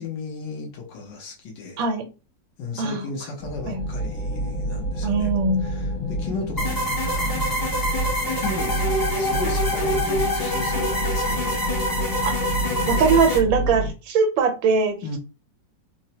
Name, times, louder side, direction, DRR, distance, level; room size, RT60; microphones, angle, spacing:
voice 1, 0.0-1.8 2.6-5.4 5.6-7.9 8.4-8.9 9.1-11.6 15.0-15.2, left 4 dB, 70° left, 1.5 m, -35 dB
sound 1, 3.4-13.9, right 1 dB, 40° left, 1.6 m, -28 dB
voice 2, 5.0-5.6 12.9-15.0, right 5 dB, 85° right, 1.5 m, -21 dB
sound 2, 6.6-13.4, left 1 dB, 25° left, 0.4 m, -26 dB
3.9 x 2.2 x 2.8 m
omnidirectional pair, 2.0 m